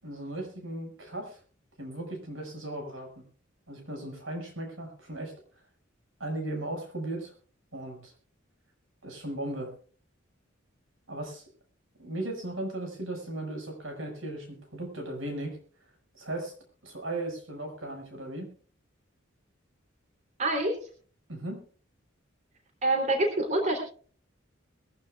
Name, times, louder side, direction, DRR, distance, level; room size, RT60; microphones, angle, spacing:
voice 1, 0.0-1.4 1.8-3.2 3.7-5.3 6.2-7.3 7.7-8.1 9.0-9.7 11.1-11.4 12.0-15.6 16.1-16.5 16.8-18.5 21.3-21.6, right 1 dB, 80° right, 3 dB, 6.1 m, -37 dB
voice 2, 20.4-20.8 22.8-23.8, right 2 dB, 40° right, 2 dB, 3.4 m, -26 dB
22.0 x 15.0 x 2.4 m, 0.43 s
head